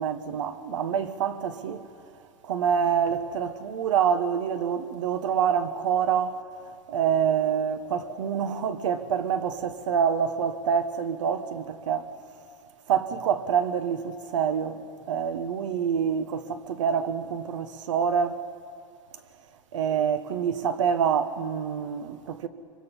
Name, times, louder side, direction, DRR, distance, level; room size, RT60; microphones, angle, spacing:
voice 1, 0.0-1.8 2.4-6.4 6.9-12.1 12.9-14.8 15.1-18.4 19.7-22.5, right 7 dB, 80° right, 1.3 m, -26 dB
24.0 x 23.5 x 5.6 m
supercardioid pair, 130°, 16 cm